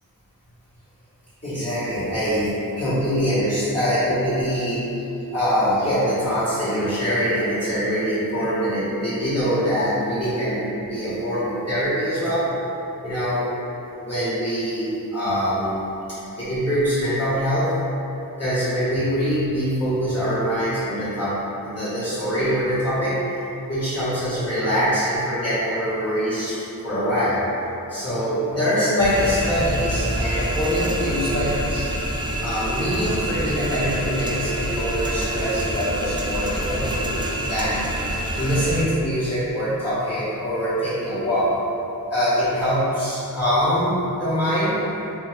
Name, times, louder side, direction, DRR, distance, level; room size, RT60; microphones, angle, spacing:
voice 1, 1.4-4.8 5.3-12.5 13.0-13.5 13.9-15.8 16.1-17.7 18.4-21.4 21.6-23.2 23.7-27.4 27.9-31.9 32.4-37.9 38.3-41.5 42.1-44.8, equal, 40° left, -14 dB, 1.1 m, -23 dB
sound 1, 29.0-38.8, right 1 dB, 15° right, 0.3 m, -26 dB
2.6 x 2.3 x 3.0 m, 2.9 s
wide cardioid pair, 45°, 37 cm